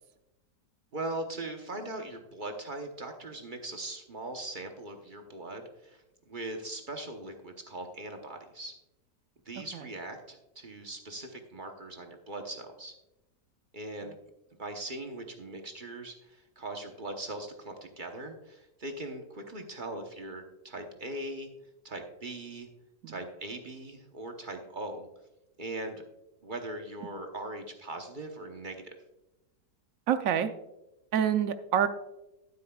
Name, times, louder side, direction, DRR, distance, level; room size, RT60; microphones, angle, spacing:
voice 1, 0.9-8.7 9.5-12.9 13.7-14.1 14.6-21.5 21.8-22.7 23.1-25.1 25.6-26.0 26.4-28.8, right 2 dB, 40° right, 4 dB, 0.8 m, -40 dB
voice 2, 30.1-30.5 31.1-31.9, right 9 dB, 65° right, 10 dB, 0.9 m, -26 dB
12.0 x 9.6 x 2.3 m, 0.93 s
omnidirectional pair, 1.8 m